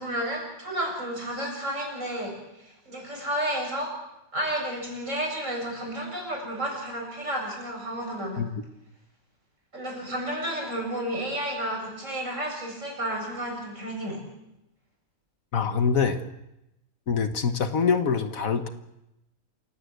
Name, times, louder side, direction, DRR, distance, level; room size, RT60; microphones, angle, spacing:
voice 1, 0.0-3.9 4.3-8.4 9.7-14.2, right 1 dB, 55° right, 0 dB, 8.2 m, -31 dB
voice 2, 15.5-16.2 17.1-18.7, left 6 dB, 65° left, 9 dB, 1.7 m, -24 dB
27.5 x 17.0 x 8.2 m, 0.88 s
omnidirectional pair, 1.6 m